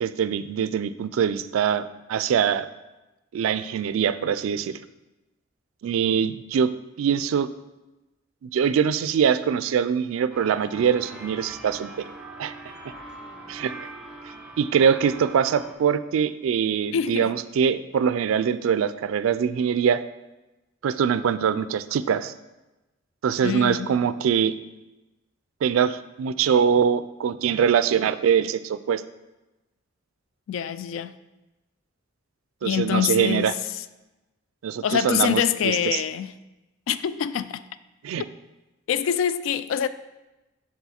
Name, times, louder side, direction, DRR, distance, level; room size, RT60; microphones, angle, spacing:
voice 1, 0.0-2.7 3.3-4.8 5.8-6.7 7.0-7.5 8.4-11.9 12.4-12.5 13.5-13.9 14.6-20.0 20.8-22.3 23.2-24.5 25.6-29.0 32.6-33.5 34.6-36.0 38.0-38.2, right 7 dB, 90° right, 0.3 m, -23 dB
sound 1, 10.3-15.7, right 2 dB, 5° right, 0.7 m, -41 dB
voice 2, 16.9-17.3 23.4-23.9 30.5-31.1 32.6-33.8 34.8-36.3 36.9-37.6 38.9-39.9, left 8 dB, 75° left, 0.3 m, -25 dB
7.0 x 3.7 x 4.2 m
head